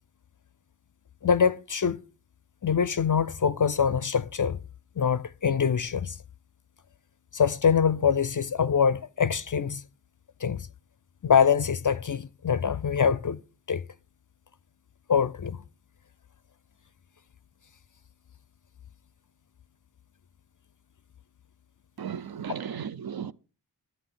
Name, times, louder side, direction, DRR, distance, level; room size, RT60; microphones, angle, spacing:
voice 1, 1.2-2.0 2.6-4.6 5.0-6.2 7.3-9.8 10.4-10.7 11.2-13.4 13.7-13.8 15.1-15.6, left 7 dB, 45° left, 0.4 m, -24 dB
voice 2, 22.0-23.3, right 8 dB, 55° right, 0.6 m, -35 dB
11.0 x 9.0 x 3.8 m
wide cardioid pair, 50°, 43 cm